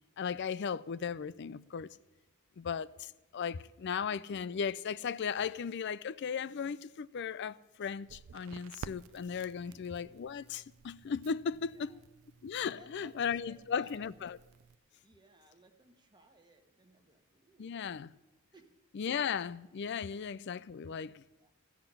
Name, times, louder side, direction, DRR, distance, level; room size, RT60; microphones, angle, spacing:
voice 1, 0.2-1.9 2.6-11.9 12.4-14.4 17.6-18.1 18.9-21.2, left 6 dB, 50° left, 0.4 m, -36 dB
Crackle, 8.0-14.8, right 6 dB, 65° right, 0.4 m, -53 dB
voice 2, 11.5-12.0 12.7-14.1 14.9-19.3 21.4-21.5, right 2 dB, 20° right, 1.3 m, -62 dB
15.0 x 5.9 x 9.9 m
head